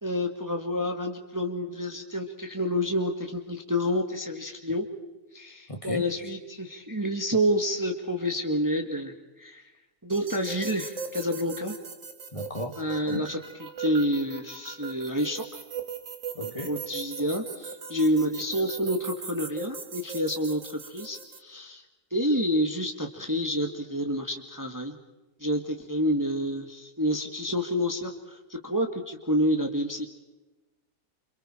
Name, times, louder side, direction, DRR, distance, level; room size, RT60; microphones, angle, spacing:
voice 1, 0.0-4.9 5.3-9.6 10.0-11.8 12.8-13.4 13.8-15.6 16.6-21.8 22.1-25.0 25.4-30.1, equal, 10° right, 3 dB, 1.9 m, -28 dB
voice 2, 5.7-6.1 12.3-13.3 16.3-16.8, left 1 dB, 20° left, 4 dB, 2.3 m, -35 dB
sound 1, 10.1-21.4, right 5 dB, 55° right, 2.0 m, -40 dB
29.5 x 27.5 x 4.5 m, 1.1 s
omnidirectional pair, 1.6 m